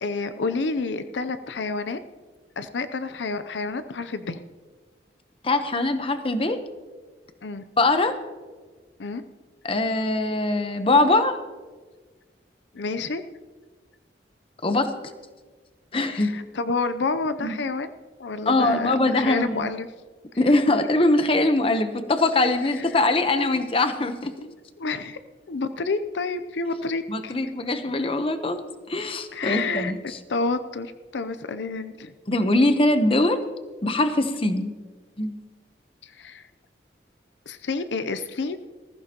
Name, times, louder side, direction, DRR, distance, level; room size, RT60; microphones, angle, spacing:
voice 1, 0.0-2.0 2.6-4.4 7.4-7.6 9.0-9.2 12.7-13.2 16.0-17.9 18.2-19.9 22.6-22.8 23.4-23.6 24.4-25.2 25.5-27.3 29.3-29.9 30.3-32.1 36.0-36.5 37.5-38.6, left 3 dB, 80° left, 11 dB, 0.6 m, -29 dB
voice 2, 5.4-6.6 7.8-8.1 9.6-11.4 14.6-14.9 15.9-16.4 17.4-17.5 18.5-19.7 20.4-24.3 27.1-28.6 28.9-29.9 32.3-33.4 33.8-34.7 35.2-35.3, left 2 dB, 30° left, 8 dB, 0.9 m, -22 dB
19.5 x 15.0 x 2.9 m, 1.4 s
head